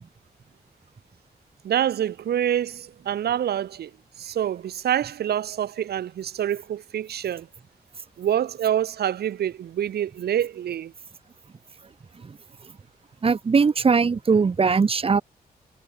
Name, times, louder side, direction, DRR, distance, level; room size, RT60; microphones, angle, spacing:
voice 1, 1.6-3.9 4.2-7.5 8.2-10.9, right 10 dB, 85° right, 0.9 m, -26 dB
voice 2, 13.2-15.2, right 5 dB, 35° right, 2.3 m, -20 dB
wide cardioid pair, 150°, 16 cm